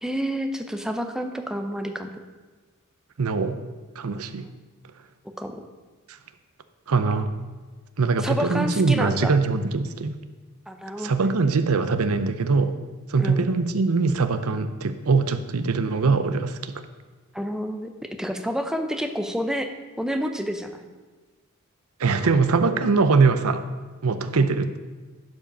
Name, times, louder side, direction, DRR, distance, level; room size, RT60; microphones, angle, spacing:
voice 1, 0.0-2.1 5.4-5.6 8.2-9.3 10.7-11.3 13.2-13.5 17.3-19.7 20.0-20.9 24.3-24.6, equal, 5° right, 6 dB, 0.6 m, -29 dB
voice 2, 3.2-3.6 4.0-4.5 6.1-6.2 6.9-7.3 8.0-10.2 11.0-12.8 13.1-16.8 22.0-23.6 24.0-24.8, right 4 dB, 85° right, 10 dB, 0.6 m, -22 dB
11.5 x 5.1 x 5.2 m, 1.3 s
head